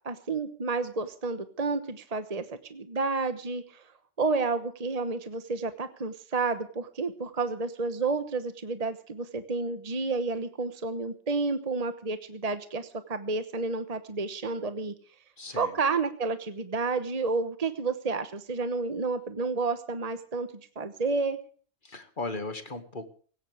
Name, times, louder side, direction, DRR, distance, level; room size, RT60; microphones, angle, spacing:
voice 1, 0.0-2.4 2.7-3.8 4.2-14.9 15.5-20.5 20.8-21.4, right 4 dB, 35° right, 10 dB, 1.2 m, -30 dB
voice 2, 15.4-15.8 21.8-23.1, left 2 dB, 45° left, 9 dB, 2.1 m, -37 dB
19.0 x 17.0 x 3.5 m, 0.43 s
omnidirectional pair, 1.1 m